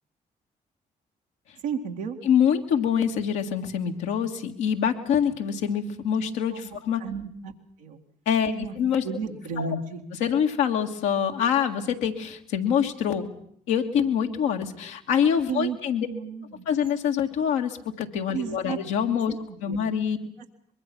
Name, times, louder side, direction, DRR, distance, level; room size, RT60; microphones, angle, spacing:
voice 1, 1.6-2.2 6.5-7.5 7.8-8.0 8.4-8.8 9.0-10.0 15.5-15.8 16.1-16.6 18.3-18.8 19.5-19.8, right 6 dB, 85° right, 2 dB, 2.0 m, -33 dB
voice 2, 2.3-7.0 8.3-9.0 9.6-9.7 10.2-13.3 13.7-16.1 16.7-19.3 19.6-20.2, left 8 dB, 80° left, 3 dB, 1.9 m, -25 dB
23.5 x 22.5 x 6.1 m, 0.68 s
hypercardioid pair, 40°, 20 cm